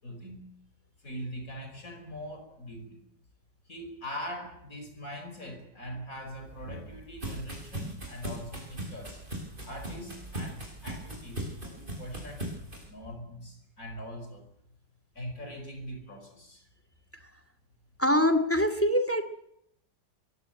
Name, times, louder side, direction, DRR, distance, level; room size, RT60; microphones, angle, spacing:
voice 1, 0.0-0.5 1.0-3.0 3.7-9.2 9.6-12.5 12.8-14.5 15.2-16.6, equal, 50° left, 6 dB, 5.4 m, -42 dB
sound 1, 6.3-12.9, right 1 dB, 30° right, 8.1 m, -39 dB
voice 2, 18.0-19.3, equal, 5° left, 11 dB, 2.3 m, -24 dB
23.5 x 17.0 x 9.1 m, 0.76 s
omnidirectional pair, 1.9 m